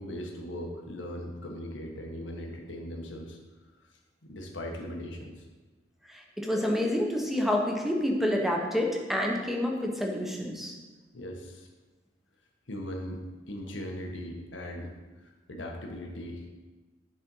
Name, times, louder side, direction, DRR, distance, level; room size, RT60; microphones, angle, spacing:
voice 1, 0.0-3.4 3.8-3.9 4.2-5.5 11.1-11.7 12.7-16.4, equal, 90° left, 1 dB, 1.4 m, -39 dB
voice 2, 6.1-10.8, left 1 dB, ahead, 0 dB, 1.1 m, -28 dB
10.0 x 4.3 x 5.6 m, 1.3 s
head